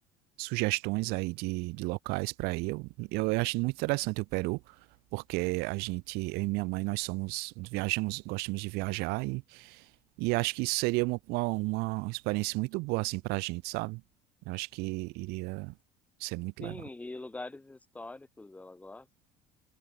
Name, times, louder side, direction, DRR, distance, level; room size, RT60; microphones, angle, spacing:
voice 1, 0.4-4.6 5.1-9.8 10.2-14.0 14.5-15.7 16.2-16.7, right 26 dB, 75° right, 1.8 m, -32 dB
voice 2, 16.6-19.2, left 2 dB, 10° left, 3.7 m, -43 dB
cardioid pair, 160°, 16 cm